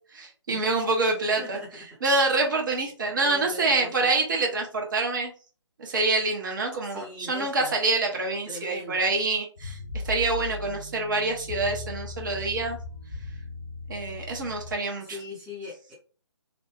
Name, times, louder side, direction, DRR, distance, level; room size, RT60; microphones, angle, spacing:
voice 1, 0.1-1.6 2.0-5.3 5.8-9.8 10.0-12.8 13.9-15.2, right 3 dB, 40° right, 1 dB, 0.8 m, -26 dB
voice 2, 1.4-1.8 3.2-4.1 6.9-7.7 8.5-9.0 15.0-15.9, left 2 dB, 5° right, -7 dB, 0.7 m, -41 dB
sound 1, 9.6-14.7, left 2 dB, 60° left, 0.6 m, -37 dB
2.7 x 2.1 x 3.3 m, 0.38 s
figure-of-eight pair, 140°, 15 cm